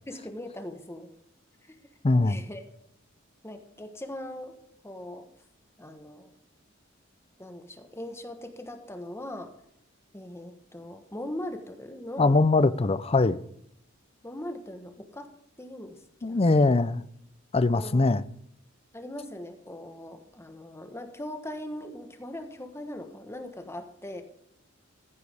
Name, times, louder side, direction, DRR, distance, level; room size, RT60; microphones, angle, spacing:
voice 1, 0.1-1.1 1.6-1.8 2.2-2.7 3.4-4.6 4.8-5.3 5.8-6.3 7.4-9.5 10.1-12.4 14.2-16.7 17.8-18.2 18.9-24.2, left 1 dB, 15° left, 1.2 m, -40 dB
voice 2, 2.0-2.4 12.2-13.4 16.2-17.0 17.5-18.2, left 3 dB, 30° left, 0.5 m, -22 dB
14.5 x 9.6 x 3.5 m
head